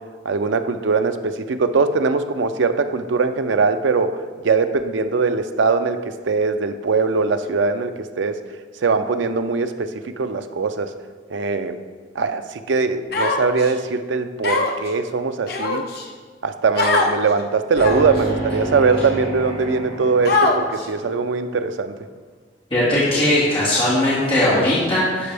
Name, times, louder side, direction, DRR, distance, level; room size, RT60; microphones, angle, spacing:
voice 1, 0.2-4.2 4.4-6.0 6.2-8.4 8.8-10.9 11.3-11.8 12.2-15.9 16.4-21.9, right 4 dB, 75° right, 9 dB, 0.4 m, -21 dB
Human voice, 13.1-13.7 14.4-14.9 15.5-16.1 16.8-17.1 17.8-18.2 18.9-19.0 20.3-20.9, left 3 dB, 55° left, 0.7 m, -21 dB
sound 1, 17.7-21.2, right 1 dB, 45° right, 1.8 m, -29 dB
voice 2, 22.7-25.3, left 1 dB, 25° left, -11 dB, 2.0 m, -19 dB
12.0 x 4.4 x 3.4 m, 1.5 s
head